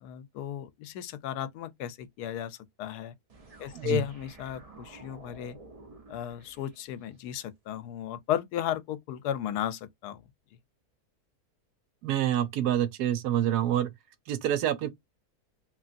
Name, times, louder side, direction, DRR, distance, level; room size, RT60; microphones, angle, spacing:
voice 1, 0.0-3.1 3.6-5.6 6.1-10.2, left 10 dB, 80° left, 1.1 m, -34 dB
sound 1, 3.3-7.2, right 3 dB, 40° right, 0.5 m, -51 dB
voice 2, 12.0-13.9 14.3-14.9, right 11 dB, 85° right, 1.2 m, -27 dB
3.1 x 2.7 x 2.5 m
omnidirectional pair, 1.7 m